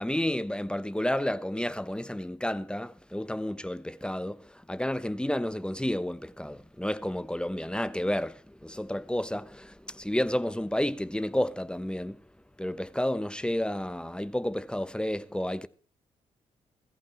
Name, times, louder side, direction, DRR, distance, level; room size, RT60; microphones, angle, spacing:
voice 1, 0.0-12.2 12.6-15.7, left 1 dB, 5° left, 0.9 m, -31 dB
21.0 x 14.0 x 3.1 m
hypercardioid pair, 45°, 16 cm